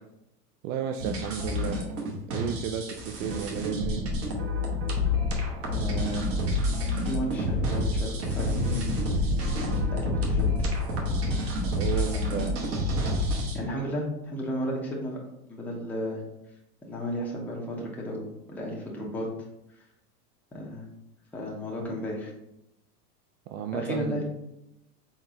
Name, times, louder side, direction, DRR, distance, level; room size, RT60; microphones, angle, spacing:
voice 1, 0.6-1.8 2.3-4.1 11.7-12.5 23.5-24.2, right 9 dB, 60° right, 5 dB, 0.5 m, -33 dB
sound 1, 1.0-13.6, left 1 dB, 30° right, 1.0 m, -28 dB
voice 2, 5.6-6.3 6.6-8.8 9.6-10.5 11.9-12.6 13.5-15.2 15.5-16.2 16.8-19.3 20.5-20.8 21.3-22.3 23.7-24.2, equal, 5° left, -3 dB, 0.8 m, -34 dB
3.9 x 3.9 x 3.0 m, 0.85 s
hypercardioid pair, 125°, 47 cm